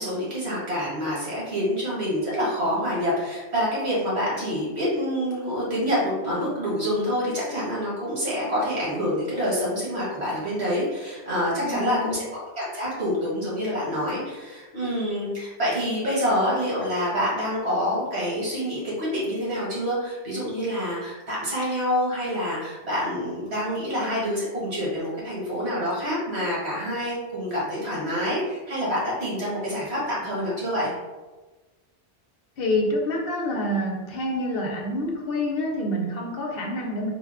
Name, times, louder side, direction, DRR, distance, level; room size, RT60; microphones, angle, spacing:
voice 1, 0.0-12.3 12.6-30.9, equal, 75° right, -7 dB, 1.8 m, -27 dB
voice 2, 11.6-12.2 32.6-37.1, left 1 dB, 65° left, 0 dB, 0.8 m, -27 dB
3.9 x 2.2 x 3.5 m, 1.2 s
omnidirectional pair, 1.1 m